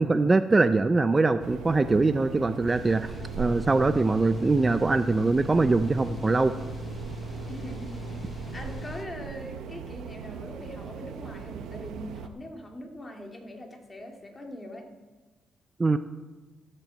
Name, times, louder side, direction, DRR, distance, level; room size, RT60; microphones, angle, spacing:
voice 1, 0.0-6.5 15.8-16.0, right 3 dB, 25° right, 11 dB, 0.5 m, -23 dB
sound 1, 1.4-12.3, right 7 dB, 75° right, 0.8 m, -39 dB
sound 2, 2.7-9.1, left 2 dB, 40° left, 0.5 m, -39 dB
voice 2, 7.5-14.9, left 1 dB, 20° left, 2 dB, 2.2 m, -42 dB
13.5 x 7.6 x 7.6 m, 1.3 s
cardioid pair, 90°, 0 cm